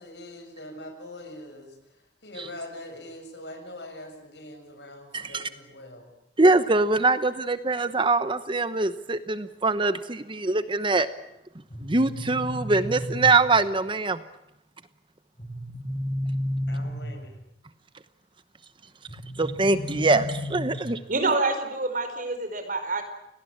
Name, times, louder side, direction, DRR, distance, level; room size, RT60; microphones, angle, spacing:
voice 1, 0.0-6.1 16.7-17.4, left 1 dB, 75° left, 7 dB, 6.8 m, -43 dB
voice 2, 5.1-5.5 6.4-11.1 11.8-14.2 19.4-21.0, right 3 dB, 30° right, 12 dB, 1.0 m, -23 dB
sound 1, 11.7-13.7 15.4-17.4 19.1-21.1, equal, 25° left, 3.2 m, -33 dB
voice 3, 21.1-23.0, right 3 dB, 50° right, 7 dB, 4.9 m, -26 dB
29.0 x 19.0 x 8.8 m, 0.87 s
head